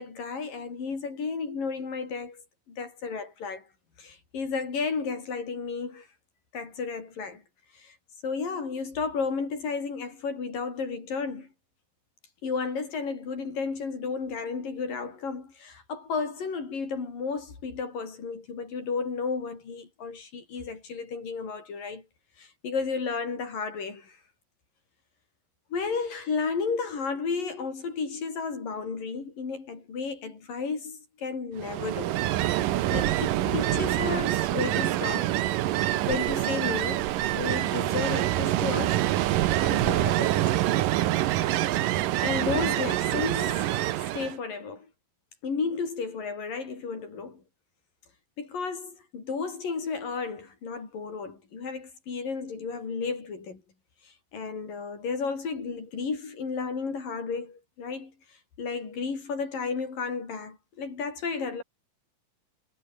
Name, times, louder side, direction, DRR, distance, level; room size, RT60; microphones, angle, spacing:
voice 1, 0.0-3.7 4.0-6.1 6.5-7.4 7.7-8.0 8.2-11.5 12.4-22.1 22.4-24.2 25.7-32.2 32.9-35.4 36.1-37.1 37.3-39.1 39.6-40.7 42.2-43.8 44.1-44.9 45.4-47.4 48.4-53.6 54.0-61.6, left 5 dB, 85° left, 7.3 m, -33 dB
Ocean, 31.6-44.4, right 14 dB, 80° right, 2.7 m, -26 dB
omnidirectional pair, 3.8 m